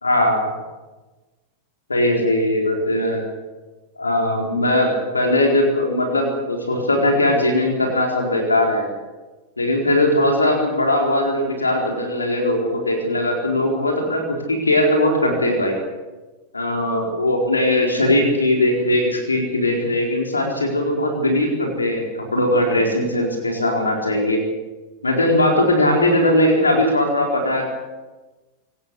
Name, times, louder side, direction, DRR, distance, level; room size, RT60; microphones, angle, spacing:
voice 1, 0.0-0.5 1.9-3.3 4.0-8.8 9.6-14.2 14.5-15.8 16.5-24.4 25.0-27.6, left 1 dB, 80° left, 1 dB, 4.3 m, -19 dB
23.5 x 19.0 x 8.4 m, 1.2 s
figure-of-eight pair, 90°, 0 cm